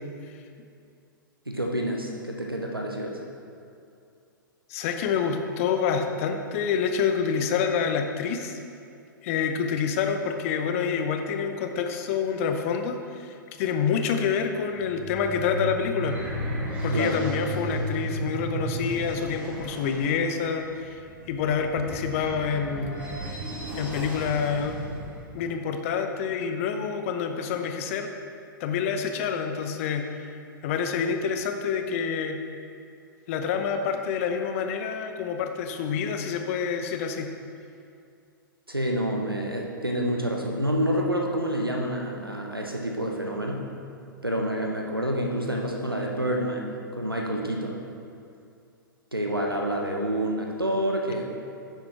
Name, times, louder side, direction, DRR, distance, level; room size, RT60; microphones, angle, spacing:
voice 1, 1.5-3.2 16.9-17.2 38.7-43.7 44.2-47.8 49.1-51.2, equal, 90° right, 0 dB, 0.9 m, -28 dB
voice 2, 4.7-8.6 9.2-16.2 16.8-21.0 21.3-23.0 23.7-24.8 25.3-28.1 28.6-30.1 30.6-32.4 33.3-37.3, left 6 dB, 40° left, 6 dB, 0.7 m, -27 dB
sound 1, 14.7-25.2, right 1 dB, 10° right, 2.2 m, -34 dB
10.5 x 7.6 x 3.5 m, 2.5 s
figure-of-eight pair, 110°, 12 cm